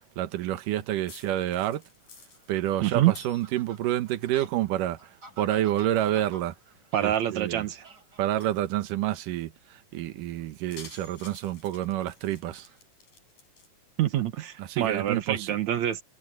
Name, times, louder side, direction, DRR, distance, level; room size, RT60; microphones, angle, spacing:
voice 1, 0.2-1.8 2.5-5.0 5.4-6.5 7.0-7.7 8.2-12.7 14.6-15.5, right 13 dB, 85° right, 2.7 m, -28 dB
sound 1, 1.1-3.8 4.1-5.0 5.3-7.2 7.7-7.8 8.4-8.6 10.5-13.7, left 4 dB, 85° left, 8.2 m, -51 dB
Fowl, 2.3-8.5, right 2 dB, 30° right, 4.6 m, -51 dB
voice 2, 2.8-3.1 6.9-7.9 14.0-16.0, right 12 dB, 65° right, 2.4 m, -26 dB
omnidirectional pair, 3.7 m